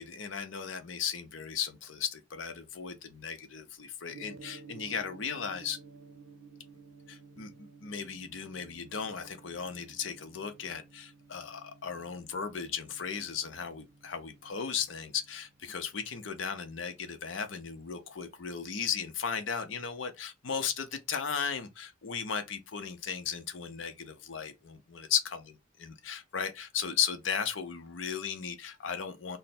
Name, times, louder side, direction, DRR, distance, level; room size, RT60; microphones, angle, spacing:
voice 1, 0.0-5.8 7.1-25.2 25.8-29.4, left 7 dB, 75° left, 0.6 m, -36 dB
Gong, 4.1-18.3, right 4 dB, 70° right, 0.6 m, -55 dB
3.2 x 2.1 x 4.2 m
head